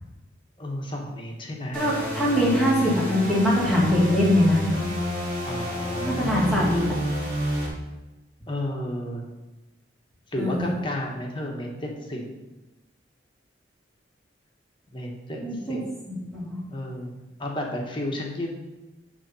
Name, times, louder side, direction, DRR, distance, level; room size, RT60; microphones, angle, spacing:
voice 1, 0.6-1.8 5.5-6.7 8.5-9.2 10.3-12.2 14.9-15.4 15.7-15.9 16.7-17.1 17.4-18.5, left 1 dB, 25° left, 0 dB, 1.3 m, -32 dB
voice 2, 1.7-4.7 6.0-6.8 10.4-10.7 15.4-15.8 16.1-16.6, equal, ahead, -6 dB, 1.8 m, -22 dB
sound 1, 1.7-7.7, equal, 45° right, 2.7 m, -29 dB
10.5 x 3.6 x 5.6 m, 1.1 s
head